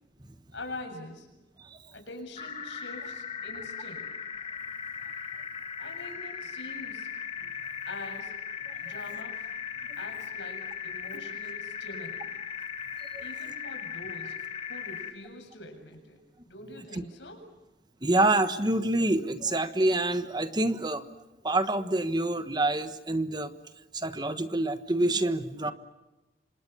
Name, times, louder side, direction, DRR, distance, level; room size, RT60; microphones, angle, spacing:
voice 1, 0.5-1.3 1.9-4.2 5.8-7.1 7.9-9.5 10.0-12.3 13.2-14.4 14.7-17.5, left 2 dB, 85° left, 4 dB, 7.4 m, -44 dB
sound 1, 2.4-15.1, left 7 dB, 35° left, 2.5 m, -38 dB
voice 2, 18.0-21.0 21.4-23.5 23.9-25.7, right 2 dB, 25° right, 10 dB, 1.3 m, -26 dB
29.0 x 26.0 x 7.0 m, 1.0 s
head